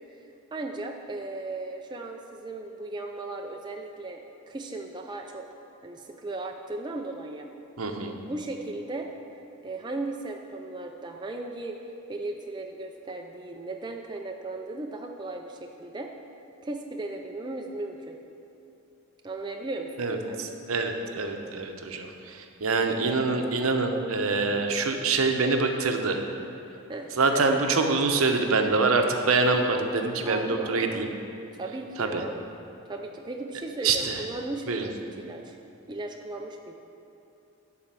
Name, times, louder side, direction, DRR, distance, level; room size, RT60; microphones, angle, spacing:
voice 1, 0.1-4.2 4.5-5.5 5.8-7.5 8.2-9.1 9.6-11.8 12.1-16.1 16.6-18.2 19.2-20.5 26.9-27.5 30.2-31.1 31.5-32.4 32.8-35.6 35.9-36.7, right 2 dB, 20° right, 2 dB, 0.4 m, -36 dB
voice 2, 7.8-8.1 20.0-26.2 27.2-31.1 32.0-32.2 33.8-34.2 34.7-34.9, right 3 dB, 70° right, 4 dB, 0.8 m, -25 dB
11.5 x 4.4 x 7.5 m, 3.0 s
head